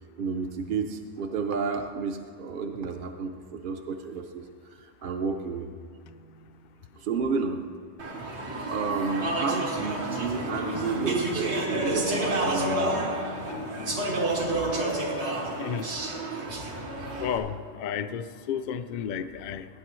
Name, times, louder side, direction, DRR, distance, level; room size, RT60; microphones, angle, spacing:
voice 1, 0.2-4.5 4.8-5.7 7.0-7.6 8.7-13.0, right 5 dB, 55° right, 4 dB, 0.8 m, -31 dB
sound 1, 6.0-7.2 9.1-16.7, left 5 dB, 85° left, 1.0 m, -42 dB
Speech / Chatter, 8.0-17.4, right 2 dB, 80° right, 1.8 m, -30 dB
voice 2, 17.2-19.7, left 8 dB, 55° left, 10 dB, 0.5 m, -32 dB
18.5 x 9.6 x 3.1 m, 2.3 s
omnidirectional pair, 1.1 m